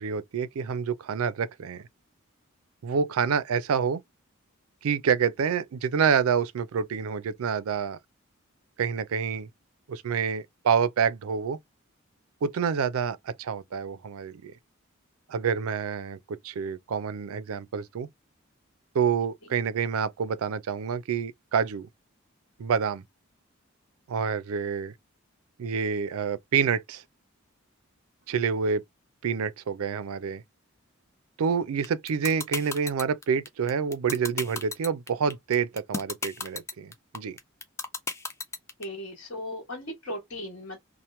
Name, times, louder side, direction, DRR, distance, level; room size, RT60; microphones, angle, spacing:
voice 1, 0.0-1.8 2.8-4.0 4.8-8.0 8.8-9.5 9.9-11.6 12.4-14.5 15.3-18.1 18.9-21.9 22.6-23.0 24.1-24.9 25.6-27.0 28.3-28.8 29.2-30.4 31.4-37.4, right 6 dB, 85° right, 0.4 m, -27 dB
sound 1, 31.8-38.8, left 3 dB, 15° left, 0.3 m, -32 dB
voice 2, 38.8-40.8, left 1 dB, 55° left, 1.2 m, -37 dB
2.9 x 2.1 x 3.0 m
head